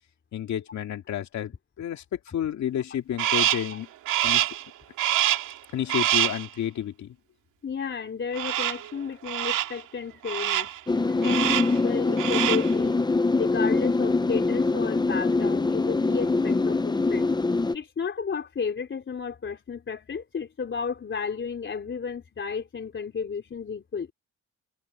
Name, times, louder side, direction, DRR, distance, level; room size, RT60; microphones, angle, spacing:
voice 1, 0.3-1.5 1.8-3.9 4.2-4.5 5.7-7.2, left 10 dB, 65° left, 2.4 m, -30 dB
Crow, 3.2-3.7 4.1-4.6 5.0-5.6 5.9-6.5 8.4-8.9 9.3-9.8 10.2-10.8 11.2-11.8 12.1-12.7, right 13 dB, 85° right, 2.4 m, -25 dB
voice 2, 7.6-10.7 11.2-13.0 13.4-17.3 17.7-24.1, left 5 dB, 40° left, 3.6 m, -32 dB
sound 1, 10.9-17.8, left 3 dB, 15° left, 0.8 m, -24 dB
cardioid pair, 90°, 30 cm